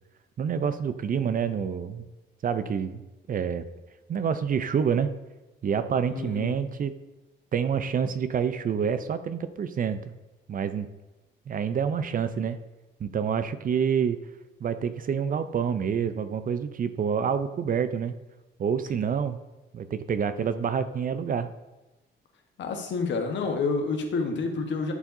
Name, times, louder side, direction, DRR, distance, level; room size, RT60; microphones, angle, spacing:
voice 1, 0.4-2.1 2.4-3.0 3.3-3.7 4.1-5.1 5.6-6.9 7.5-10.1 10.5-10.9 11.5-12.6 13.0-14.2 14.6-18.1 18.6-19.4 19.7-21.5, right 7 dB, 45° right, 11 dB, 0.5 m, -27 dB
voice 2, 6.1-6.5 22.6-24.9, left 4 dB, 65° left, 4 dB, 1.2 m, -28 dB
11.0 x 4.6 x 2.7 m, 1.1 s
cardioid pair, 90°, 20 cm